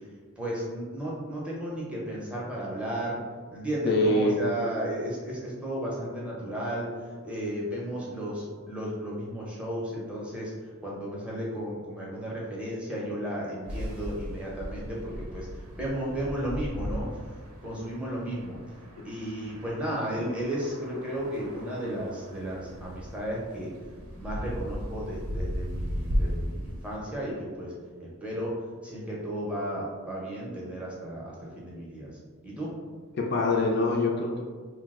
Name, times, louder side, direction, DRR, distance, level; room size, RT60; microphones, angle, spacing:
voice 1, 0.4-3.2 3.5-6.9 7.2-10.5 10.8-17.1 17.6-18.6 19.0-23.7 24.2-27.7 28.0-28.5 28.8-32.1 32.4-32.7, right 1 dB, 5° right, -6 dB, 0.5 m, -34 dB
voice 2, 3.9-4.4 19.0-19.1 33.1-34.4, left 2 dB, 50° left, 0 dB, 0.3 m, -24 dB
sound 1, 13.6-27.0, equal, 90° right, 0.5 m, -36 dB
2.7 x 2.0 x 3.4 m, 1.5 s
head